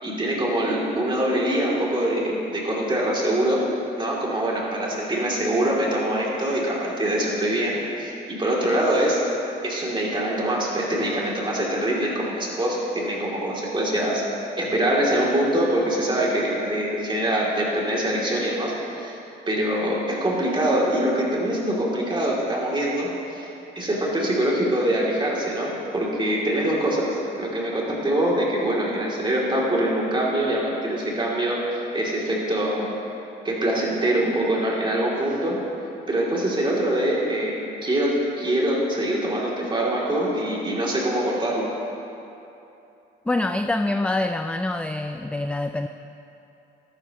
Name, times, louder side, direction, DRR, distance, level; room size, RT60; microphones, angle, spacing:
voice 1, 0.0-3.6 4.0-9.2 9.6-14.2 14.6-19.2 19.5-23.5 23.7-32.9 33.4-35.6 36.1-37.6 37.8-41.7, right 1 dB, 25° right, -4 dB, 2.8 m, -24 dB
voice 2, 43.3-45.9, left 2 dB, 5° left, 7 dB, 0.3 m, -25 dB
13.5 x 11.5 x 3.0 m, 2.8 s
cardioid pair, 90°, 20 cm